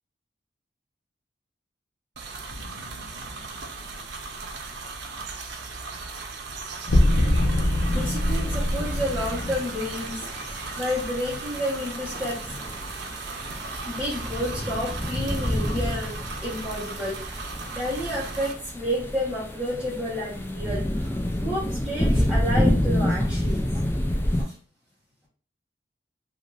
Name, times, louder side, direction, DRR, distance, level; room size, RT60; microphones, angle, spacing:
sound 1, 2.2-18.5, right 4 dB, 75° right, 0.5 m, -37 dB
sound 2, 2.5-3.9 6.9-9.6, left 1 dB, 90° left, 0.6 m, -24 dB
sound 3, 7.6-24.4, left 1 dB, 10° left, 0.3 m, -29 dB
voice 1, 7.9-12.6 13.8-16.2 16.4-23.8 24.4-24.5, equal, 5° right, -12 dB, 0.9 m, -31 dB
2.5 x 2.4 x 3.1 m, 0.42 s
head